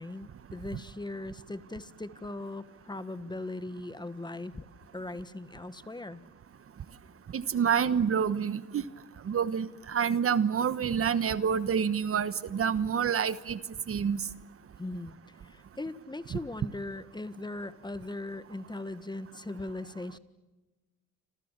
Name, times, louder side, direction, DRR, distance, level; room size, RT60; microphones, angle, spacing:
voice 1, 0.0-4.7 4.9-6.2 14.8-15.1 15.4-20.2, left 2 dB, 15° left, 13 dB, 1.6 m, -39 dB
voice 2, 7.3-8.8 9.3-13.6 13.9-14.2 16.3-16.4, right 7 dB, 50° right, 14 dB, 1.2 m, -27 dB
29.0 x 27.0 x 7.5 m, 1.2 s
cardioid pair, 90°, 30 cm